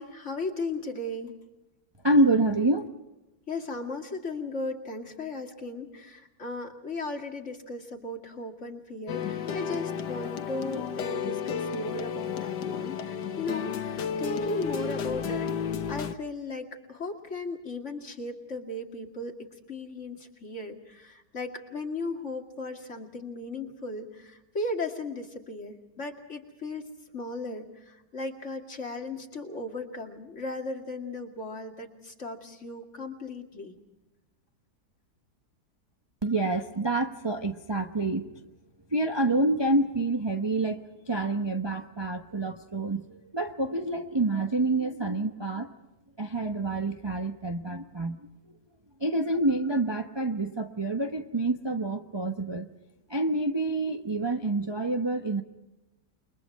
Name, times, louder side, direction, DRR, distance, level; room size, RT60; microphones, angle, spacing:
voice 1, 0.0-1.4 3.5-15.5 15.9-19.4 19.7-26.9 27.1-33.8, left 2 dB, 45° left, 2 dB, 2.6 m, -36 dB
voice 2, 2.0-2.9 36.2-38.3 38.9-45.7 46.2-48.2 49.0-52.7 53.1-55.4, right 2 dB, 20° right, 4 dB, 0.9 m, -27 dB
sound 1, 9.1-16.1, left 6 dB, 90° left, 1.7 m, -32 dB
29.0 x 23.0 x 4.8 m, 0.99 s
omnidirectional pair, 1.8 m